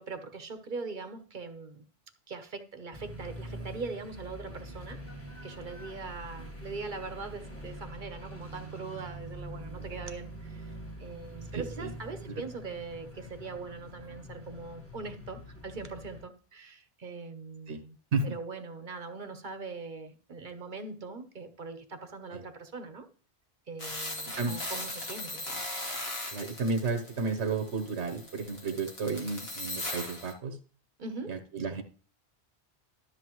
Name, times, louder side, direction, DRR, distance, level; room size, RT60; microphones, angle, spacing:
voice 1, 0.0-1.8 2.3-5.0 5.4-10.7 11.0-18.0 18.2-23.1 23.7-25.5 31.0-31.4, right 4 dB, 50° right, 8 dB, 1.0 m, -41 dB
sound 1, 2.9-16.2, equal, 15° left, 1.4 m, -44 dB
voice 2, 11.5-11.9 12.3-12.4 17.7-17.8 18.1-18.3 22.3-22.4 24.4-24.5 26.3-30.6 31.3-31.8, right 4 dB, 85° right, 7 dB, 1.3 m, -32 dB
sound 2, 23.8-30.3, left 1 dB, 65° left, 1.9 m, -39 dB
13.0 x 6.7 x 3.1 m, 0.41 s
omnidirectional pair, 1.1 m